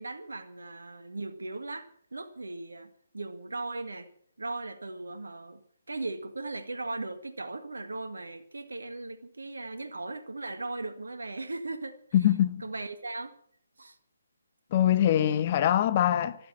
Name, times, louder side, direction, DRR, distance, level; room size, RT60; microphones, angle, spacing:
voice 1, 0.0-4.1 4.4-5.6 5.9-12.0 12.6-13.3 13.8-14.0, right 2 dB, 80° right, 1.7 m, -38 dB
voice 2, 12.1-12.6 14.7-16.4, left 11 dB, 35° left, 1.2 m, -23 dB
14.0 x 12.5 x 7.4 m
figure-of-eight pair, 145°, 0 cm